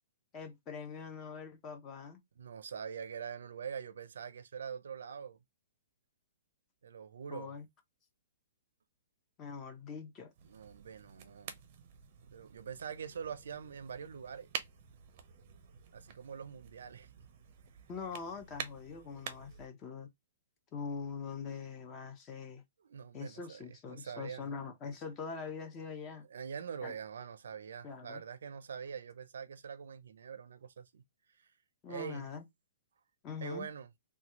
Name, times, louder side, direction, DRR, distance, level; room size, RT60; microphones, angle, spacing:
voice 1, 0.3-2.2 7.3-7.7 9.4-10.3 17.9-20.1 20.7-22.6 23.1-26.3 26.8-26.9 27.8-28.2 31.8-32.4 33.2-33.7, left 5 dB, 20° left, 0.6 m, -43 dB
voice 2, 2.4-5.4 6.8-7.5 10.4-11.6 12.3-14.5 15.9-17.1 22.9-24.5 26.3-31.0 31.9-32.3 33.4-33.9, right 7 dB, 80° right, 0.5 m, -44 dB
sound 1, 10.3-19.7, right 8 dB, 35° right, 0.6 m, -48 dB
3.3 x 2.3 x 2.9 m
hypercardioid pair, 170°, 0 cm